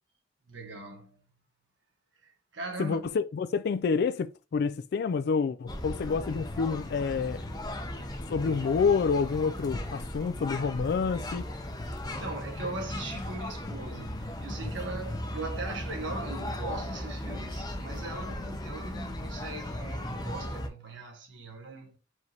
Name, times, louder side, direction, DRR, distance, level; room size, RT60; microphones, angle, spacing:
voice 1, 0.5-1.2 2.2-3.2 12.1-22.0, right 3 dB, 80° right, 1.3 m, -40 dB
voice 2, 2.8-7.4 8.3-11.4, left 5 dB, 60° left, 0.3 m, -28 dB
sound 1, 5.7-20.7, left 1 dB, 20° left, 0.6 m, -37 dB
4.6 x 3.2 x 2.9 m
head